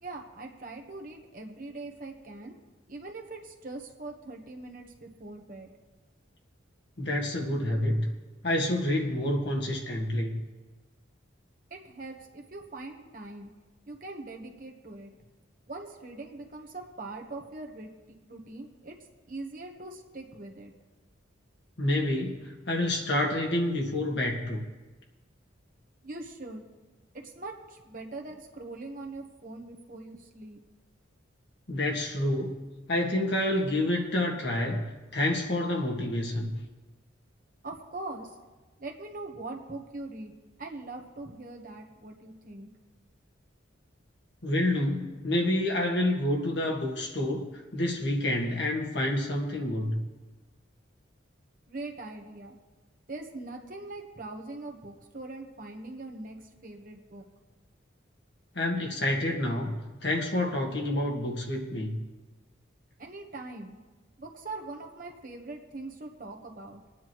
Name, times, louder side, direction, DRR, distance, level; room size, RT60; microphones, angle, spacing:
voice 1, 0.0-2.5 2.9-5.7 11.7-13.5 13.9-15.1 15.7-17.9 18.2-20.7 26.0-26.6 27.1-30.6 37.6-38.4 38.8-42.7 51.7-52.6 53.1-57.2 63.0-63.8 64.2-66.8, right 2 dB, 45° right, 2 dB, 1.3 m, -42 dB
voice 2, 7.0-8.1 8.4-10.4 21.8-24.6 31.7-32.6 32.9-34.9 35.1-36.6 44.4-50.0 58.6-59.8 60.0-62.0, left 1 dB, 60° left, 0 dB, 1.8 m, -28 dB
22.5 x 9.7 x 3.1 m, 1.2 s
head